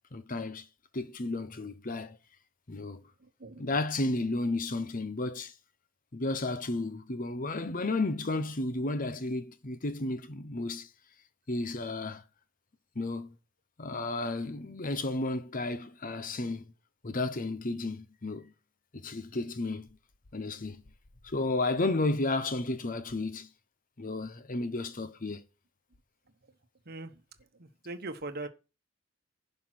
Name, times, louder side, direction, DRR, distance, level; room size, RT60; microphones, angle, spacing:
voice 1, 0.1-0.7 0.9-2.2 2.7-3.0 3.6-5.5 6.1-10.9 11.5-12.2 12.9-13.4 13.8-16.6 17.0-18.5 18.9-19.9 20.3-20.8 21.2-23.5 24.0-25.4, left 2 dB, 40° left, 0.9 m, -32 dB
voice 2, 3.2-3.6 26.8-27.2 27.5-28.5, right 2 dB, 50° right, 1.1 m, -41 dB
11.0 x 5.6 x 6.0 m
head